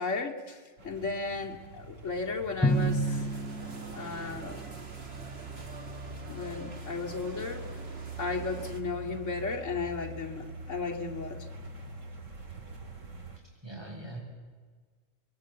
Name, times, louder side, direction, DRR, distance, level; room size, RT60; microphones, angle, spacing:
voice 1, 0.0-3.3 4.0-4.6 6.3-7.7 8.2-11.5, left 4 dB, 65° left, 1 dB, 2.6 m, -35 dB
sound 1, 0.8-13.4, right 3 dB, 70° right, 2.8 m, -44 dB
Drum, 2.6-4.8, right 1 dB, 5° left, 1.1 m, -30 dB
sound 2, 2.7-8.8, right 3 dB, 50° right, 2.3 m, -46 dB
voice 2, 13.3-14.2, right 2 dB, 20° right, -2 dB, 8.2 m, -43 dB
25.5 x 22.5 x 8.8 m, 1.5 s
omnidirectional pair, 1.4 m